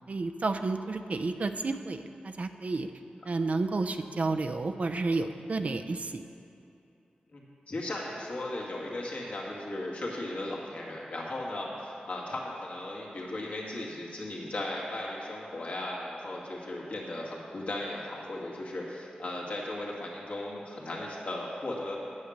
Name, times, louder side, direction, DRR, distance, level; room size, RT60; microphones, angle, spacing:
voice 1, 0.1-2.9 3.2-6.2, right 3 dB, 50° right, 7 dB, 0.6 m, -31 dB
voice 2, 7.3-22.0, left 1 dB, 60° left, -4 dB, 2.3 m, -36 dB
9.7 x 8.7 x 6.6 m, 2.8 s
wide cardioid pair, 100°, 3 cm